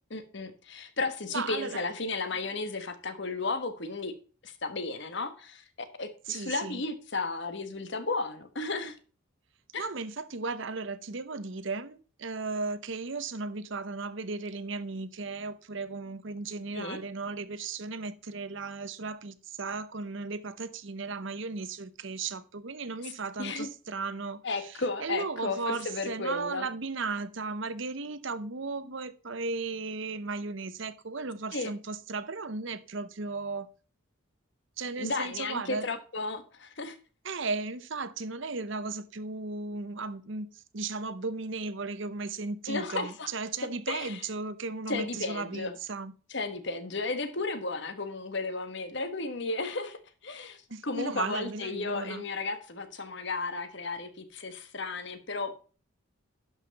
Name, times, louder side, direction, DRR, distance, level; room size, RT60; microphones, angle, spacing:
voice 1, 0.1-4.2 4.4-5.6 6.0-8.9 9.7-9.9 16.7-17.0 23.4-23.7 24.4-26.7 31.5-31.7 35.0-37.0 42.7-43.3 43.9-44.2 44.9-45.7 46.3-50.6 50.8-55.6, left 3 dB, 55° left, 1.3 m, -34 dB
voice 2, 1.3-1.8 6.3-6.8 9.8-33.7 34.8-35.9 37.2-46.1 50.7-52.2, right 4 dB, 60° right, 0.8 m, -36 dB
11.5 x 5.7 x 4.1 m
head